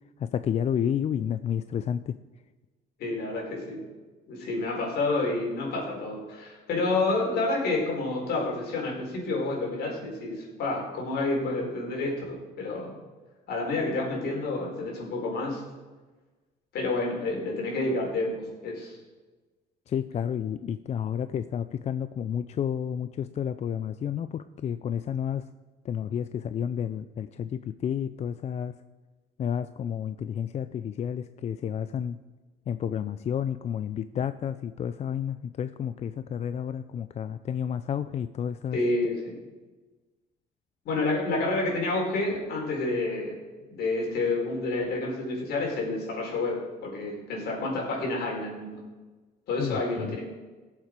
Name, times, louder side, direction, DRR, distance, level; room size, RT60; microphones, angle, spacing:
voice 1, 0.2-2.2 19.9-25.4 25.8-28.7 29.4-32.2 32.7-38.8 49.6-50.2, left 8 dB, 40° left, 12 dB, 0.4 m, -31 dB
voice 2, 3.0-3.8 4.3-12.9 13.5-15.6 16.7-19.0 38.7-39.3 40.8-43.4 43.7-48.8 49.5-50.2, left 2 dB, 70° left, -1 dB, 4.4 m, -29 dB
17.0 x 7.4 x 4.7 m, 1.3 s
cardioid pair, 110°, 17 cm